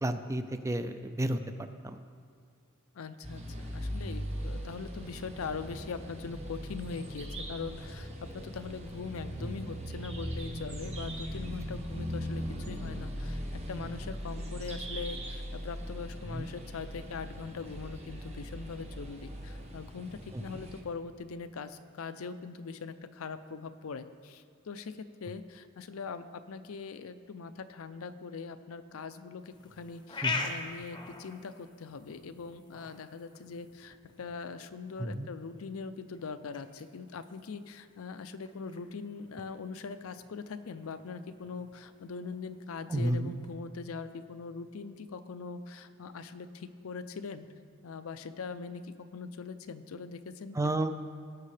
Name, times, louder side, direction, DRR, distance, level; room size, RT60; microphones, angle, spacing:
voice 1, 0.0-1.4 1.8-2.0 9.4-9.5 16.3-16.5 20.3-20.4 30.2-30.5 35.0-35.3 42.9-43.3 50.6-50.9, right 1 dB, 15° right, 9 dB, 0.4 m, -31 dB
voice 2, 2.9-13.4 13.7-47.5 47.8-50.6, left 4 dB, 80° left, 11 dB, 0.5 m, -41 dB
sound 1, 3.2-20.8, equal, 30° right, 1.2 m, -39 dB
sound 2, 29.4-43.5, left 4 dB, 20° left, 0.7 m, -44 dB
18.0 x 6.6 x 3.3 m, 2.2 s
head